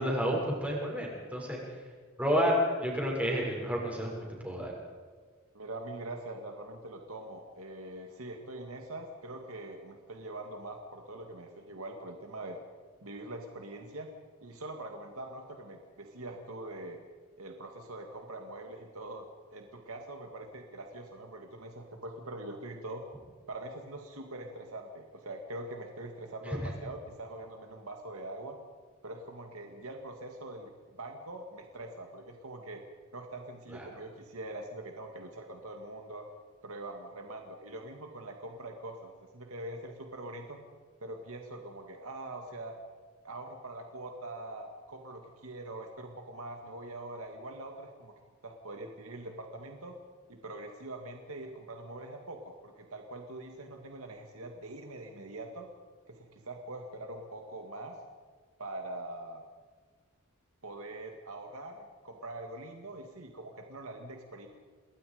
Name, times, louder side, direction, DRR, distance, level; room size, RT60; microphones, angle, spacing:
voice 1, 0.0-1.6 2.2-4.1 4.4-4.7 26.5-26.6 33.7-33.9, equal, 5° right, -3 dB, 6.8 m, -30 dB
voice 2, 5.5-12.6 13.0-14.1 14.4-17.0 17.4-19.3 19.5-23.0 23.5-28.6 29.0-32.8 33.1-36.3 36.6-40.6 41.0-42.8 43.2-48.1 48.4-50.0 50.3-55.7 56.1-58.0 58.6-59.4 60.6-64.5, right 2 dB, 80° right, 3 dB, 2.2 m, -43 dB
28.5 x 21.0 x 5.2 m, 1.5 s
head